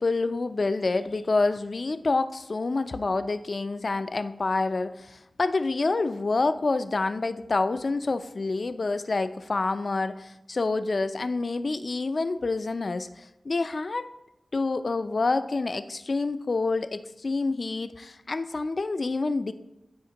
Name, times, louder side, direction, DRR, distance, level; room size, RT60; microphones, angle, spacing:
voice 1, 0.0-14.0 14.5-19.5, left 3 dB, 55° left, 10 dB, 0.4 m, -27 dB
12.0 x 4.2 x 2.9 m, 0.92 s
cardioid pair, 45°, 0 cm